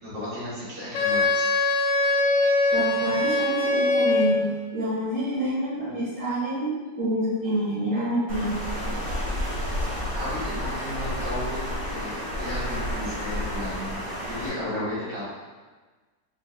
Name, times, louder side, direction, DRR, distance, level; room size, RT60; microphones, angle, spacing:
voice 1, 0.0-1.5 5.7-5.9 9.9-15.2, left 1 dB, 75° right, -11 dB, 2.4 m, -34 dB
Wind instrument woodwind instrument, 0.9-4.5, left 2 dB, 80° left, 1.2 m, -22 dB
voice 2, 2.7-4.5 4.7-6.7 7.0-8.5, right 1 dB, 90° right, -12 dB, 2.1 m, -27 dB
Water, 8.3-14.5, equal, 55° right, 1.4 m, -30 dB
5.1 x 2.3 x 3.6 m, 1.3 s
omnidirectional pair, 1.9 m